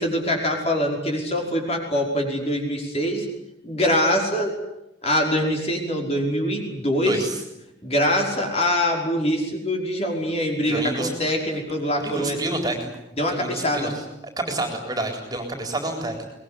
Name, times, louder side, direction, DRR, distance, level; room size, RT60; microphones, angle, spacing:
voice 1, 0.0-3.3 3.6-4.5 5.0-7.3 7.8-12.4 13.2-13.9, equal, 30° left, 1 dB, 5.3 m, -24 dB
voice 2, 7.1-7.4 10.7-11.1 12.0-12.9 13.3-13.9 14.4-16.3, right 2 dB, 20° right, 4 dB, 4.0 m, -28 dB
24.0 x 20.5 x 9.8 m, 0.87 s
head